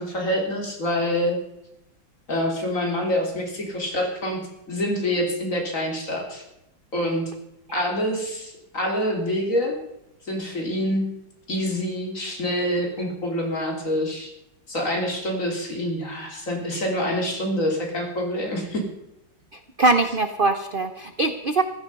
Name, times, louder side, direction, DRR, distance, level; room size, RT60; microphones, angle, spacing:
voice 1, 0.0-1.4 2.3-4.4 4.7-6.4 6.9-7.3 7.7-9.8 10.3-11.1 11.5-14.3 14.7-18.8, equal, 40° left, 1 dB, 3.7 m, -26 dB
voice 2, 19.8-21.6, right 3 dB, 55° right, 9 dB, 0.6 m, -22 dB
15.0 x 14.0 x 5.4 m, 0.87 s
omnidirectional pair, 2.2 m